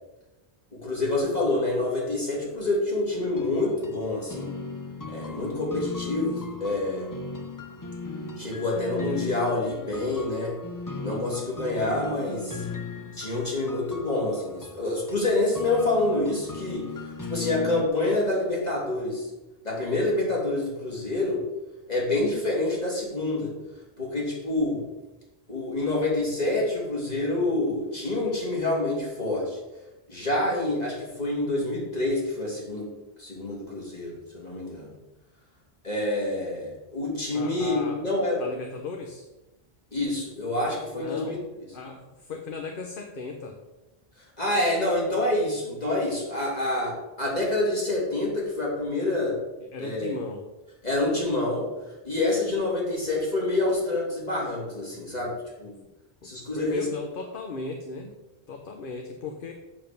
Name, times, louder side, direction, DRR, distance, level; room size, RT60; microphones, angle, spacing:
voice 1, 0.7-4.5 5.1-7.1 8.4-10.6 11.0-12.6 13.1-16.9 17.3-19.3 19.6-21.4 21.9-23.5 24.0-24.8 25.5-29.6 30.1-32.9 33.2-34.9 35.8-38.4 39.9-41.4 44.4-49.4 49.8-50.2 50.8-51.7 52.0-55.7 56.2-56.9, left 2 dB, 40° left, -4 dB, 2.9 m, -27 dB
sound 1, 3.1-17.9, left 4 dB, 25° left, 0.5 m, -37 dB
voice 2, 37.3-38.1 38.4-39.3 40.9-41.4 41.7-43.6 49.6-50.5 56.2-58.2 58.5-59.5, left 4 dB, 60° left, 4 dB, 1.0 m, -36 dB
7.6 x 7.0 x 5.2 m, 1.0 s
omnidirectional pair, 1.1 m